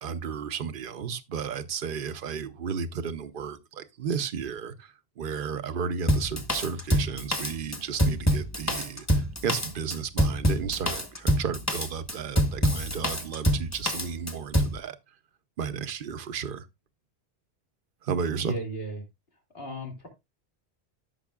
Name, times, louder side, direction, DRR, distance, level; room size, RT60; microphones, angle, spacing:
voice 1, 0.0-15.1 15.6-16.7 18.0-18.6, right 6 dB, 60° right, 0.9 m, -33 dB
Drum kit, 6.1-14.8, equal, 15° left, 1.2 m, -25 dB
voice 2, 18.4-19.0 19.5-20.1, right 1 dB, 70° left, 2.8 m, -35 dB
13.0 x 6.4 x 2.4 m
omnidirectional pair, 1.1 m